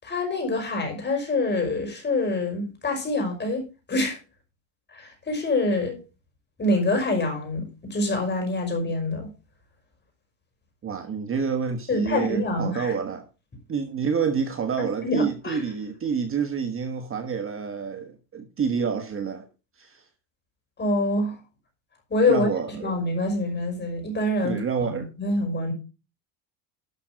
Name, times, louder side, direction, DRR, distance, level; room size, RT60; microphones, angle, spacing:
voice 1, 0.0-3.6 3.9-4.2 4.9-6.0 6.6-9.3 11.9-12.9 14.8-15.6 20.8-21.4 22.1-22.5 22.8-24.6 25.2-25.7, left 2 dB, 25° left, 5.5 m, -25 dB
voice 2, 10.8-13.3 13.7-19.5 19.8-20.0 22.3-23.0 24.4-25.1, right 6 dB, 30° right, 1.3 m, -28 dB
12.5 x 5.9 x 5.1 m
cardioid pair, 120°, 41 cm